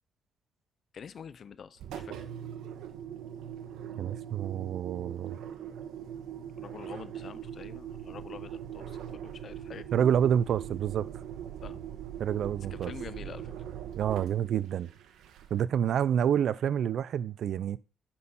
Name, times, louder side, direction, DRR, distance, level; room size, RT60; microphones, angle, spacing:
voice 1, 0.9-2.2 6.6-9.9 11.6-11.8 12.7-13.5, left 7 dB, 55° left, 0.5 m, -46 dB
Engine, 1.8-15.7, right 9 dB, 85° right, 1.2 m, -41 dB
voice 2, 4.0-5.4 9.9-11.1 12.2-12.9 14.0-14.9 15.5-17.8, right 9 dB, 70° right, 0.5 m, -28 dB
9.7 x 4.3 x 5.6 m
cardioid pair, 90°, 0 cm